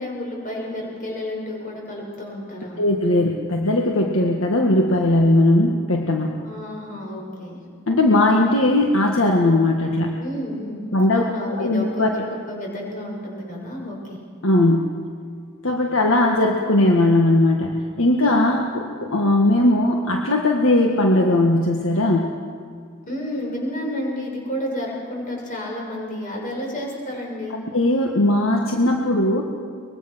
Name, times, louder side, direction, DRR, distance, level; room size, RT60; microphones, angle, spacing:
voice 1, 0.0-2.8 6.4-7.6 10.2-14.2 23.1-27.6, left 1 dB, 40° left, -2 dB, 7.2 m, -31 dB
voice 2, 2.8-6.4 7.9-10.1 10.9-11.2 11.6-12.1 14.4-14.9 15.6-22.3 27.7-29.4, left 1 dB, 70° left, 1 dB, 1.7 m, -18 dB
24.0 x 21.5 x 6.2 m, 2.2 s
head